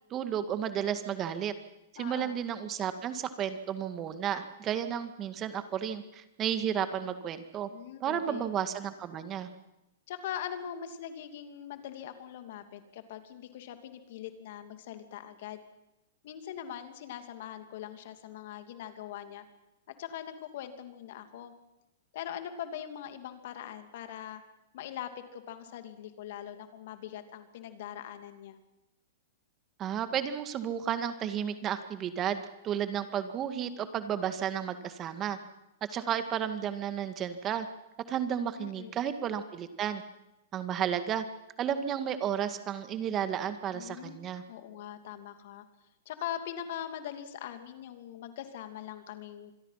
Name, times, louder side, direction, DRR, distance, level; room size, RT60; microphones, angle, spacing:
voice 1, 0.1-1.5 1.9-7.7 8.0-9.5 29.8-35.4 35.9-37.7 38.1-40.0 40.5-41.2 41.6-44.4, right 9 dB, 30° right, 9 dB, 1.9 m, -32 dB
voice 2, 2.0-2.4 7.7-8.5 10.1-15.6 16.2-19.4 19.9-21.5 22.1-24.4 24.7-28.6 38.6-39.0 43.7-45.7 46.1-49.5, left 10 dB, 60° left, 8 dB, 2.6 m, -42 dB
26.5 x 22.0 x 5.8 m, 0.93 s
hypercardioid pair, 120°, 0 cm